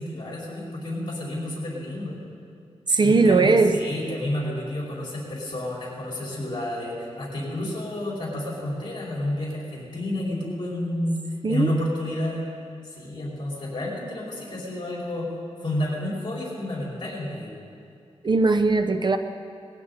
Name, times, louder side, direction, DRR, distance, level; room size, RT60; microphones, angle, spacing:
voice 1, 0.0-2.2 3.0-12.4 12.8-15.3 15.6-17.5, left 1 dB, 45° left, -5 dB, 5.2 m, -30 dB
voice 2, 2.9-3.8 11.4-11.7 18.2-19.2, right 3 dB, 45° right, 8 dB, 0.7 m, -19 dB
20.5 x 16.0 x 4.2 m, 2.4 s
wide cardioid pair, 125°, 11 cm